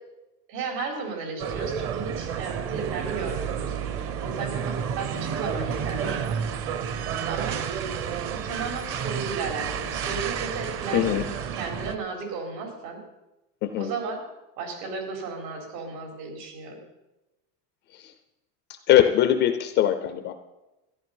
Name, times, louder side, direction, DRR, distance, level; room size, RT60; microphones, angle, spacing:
voice 1, 0.5-3.8 4.2-6.4 7.3-7.6 8.3-11.3 11.6-13.0 13.8-14.2 14.6-16.8, right 4 dB, 80° right, 2 dB, 4.5 m, -34 dB
sound 1, 1.4-12.0, right 7 dB, 30° right, 0.6 m, -30 dB
voice 2, 10.9-11.3 13.6-13.9 17.9-18.1 18.7-20.3, left 11 dB, 25° left, 9 dB, 0.3 m, -22 dB
14.0 x 10.5 x 5.5 m, 1.0 s
supercardioid pair, 150°, 48 cm